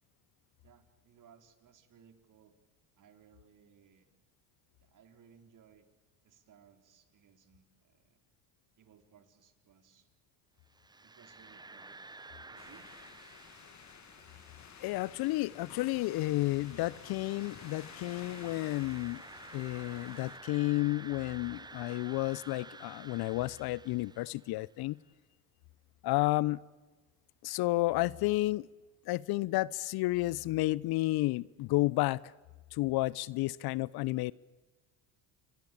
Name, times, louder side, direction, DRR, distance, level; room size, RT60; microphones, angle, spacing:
voice 1, 0.6-2.5 3.0-4.1 4.8-5.9 6.2-8.2 8.8-10.1 11.0-11.9 12.5-12.9, right 7 dB, 45° right, 4.3 m, -62 dB
sound 1, 10.7-24.7, right 3 dB, 10° right, 0.8 m, -52 dB
sound 2, 12.6-20.4, left 9 dB, 40° left, 1.9 m, -52 dB
voice 2, 14.8-19.2 19.5-25.0 26.0-26.6 27.4-28.7 29.1-32.2 32.7-34.3, left 19 dB, 60° left, 0.9 m, -31 dB
28.5 x 22.5 x 8.7 m
supercardioid pair, 80°, 42 cm